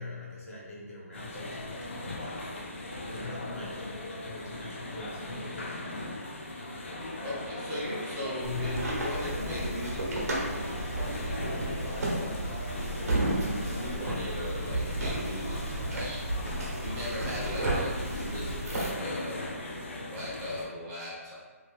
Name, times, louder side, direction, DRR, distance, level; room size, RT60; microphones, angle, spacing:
voice 1, 0.0-2.5 3.0-6.2 8.4-8.9, left 4 dB, 70° left, -4 dB, 1.2 m, -42 dB
sound 1, 1.1-20.7, left 1 dB, 50° left, 0.5 m, -39 dB
voice 2, 6.5-6.9 7.2-12.4 13.0-19.4 20.1-21.3, left 1 dB, 10° right, -9 dB, 0.5 m, -39 dB
sound 2, 8.4-18.9, right 1 dB, 75° right, 1.0 m, -33 dB
2.8 x 2.7 x 3.4 m, 1.5 s
hypercardioid pair, 175°, 8 cm